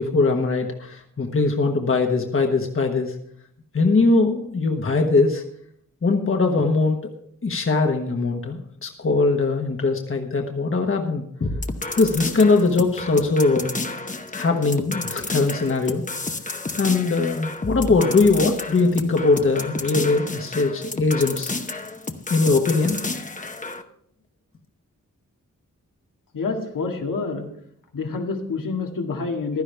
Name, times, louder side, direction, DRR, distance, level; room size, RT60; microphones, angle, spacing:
voice 1, 0.0-3.1 3.7-5.4 6.0-7.0 7.4-11.5 12.0-13.7 14.3-16.0 16.8-21.6 22.3-23.0, left 3 dB, 40° left, 3 dB, 1.3 m, -21 dB
sound 1, 11.4-23.8, left 3 dB, 25° left, 0.9 m, -31 dB
voice 2, 26.3-27.5 27.9-29.6, left 4 dB, 85° left, 2 dB, 2.0 m, -27 dB
15.5 x 12.0 x 3.4 m, 0.68 s
wide cardioid pair, 100°, 32 cm